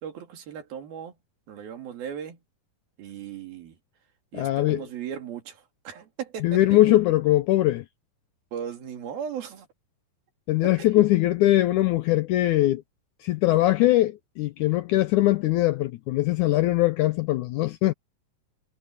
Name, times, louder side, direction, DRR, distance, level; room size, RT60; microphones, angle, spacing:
voice 1, 0.0-1.2 1.5-2.4 3.0-3.8 4.3-7.0 8.5-9.7 10.8-10.9, right 8 dB, 80° right, 4.4 m, -37 dB
voice 2, 4.3-4.8 6.4-7.8 10.5-12.8 13.2-17.9, left 16 dB, 85° left, 1.8 m, -21 dB
omnidirectional pair, 4.2 m